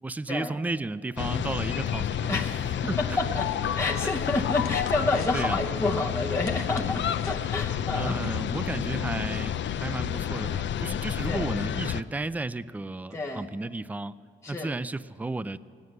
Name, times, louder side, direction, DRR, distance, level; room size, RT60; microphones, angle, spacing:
voice 1, 0.0-2.3 2.9-3.2 5.3-5.6 7.9-14.1 14.5-15.6, right 2 dB, 10° right, 16 dB, 0.3 m, -33 dB
sound 1, 1.2-12.0, left 9 dB, 60° left, 0.5 m, -30 dB
voice 2, 2.3-3.5 3.7-8.2 11.2-11.5 13.1-13.5 14.4-14.7, left 2 dB, 15° left, -2 dB, 0.8 m, -29 dB
sound 2, 3.3-8.3, left 7 dB, 85° left, 0.9 m, -50 dB
18.0 x 9.5 x 7.7 m, 2.1 s
cardioid pair, 100°, 21 cm